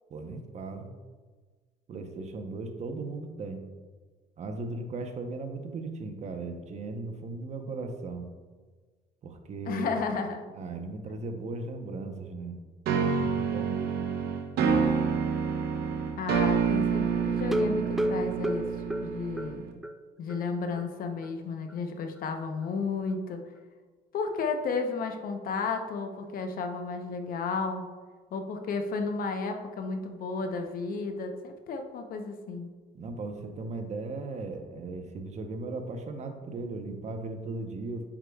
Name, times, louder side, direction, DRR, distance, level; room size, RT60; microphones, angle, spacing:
voice 1, 0.1-0.9 1.9-3.7 4.4-8.3 9.2-10.0 10.5-12.5 13.0-14.2 32.9-38.0, right 3 dB, 40° right, 5 dB, 0.8 m, -37 dB
voice 2, 9.7-10.4 16.2-18.7 19.0-19.7 20.2-23.4 24.1-27.9 28.3-32.7, left 4 dB, 60° left, 5 dB, 0.8 m, -33 dB
sound 1, 12.9-19.7, right 6 dB, 75° right, 0.8 m, -28 dB
sound 2, 17.4-20.0 20.3-20.4 20.8-20.9 21.2-21.3, right 1 dB, ahead, 0.4 m, -31 dB
8.8 x 4.8 x 2.3 m, 1.4 s
cardioid pair, 110°, 17 cm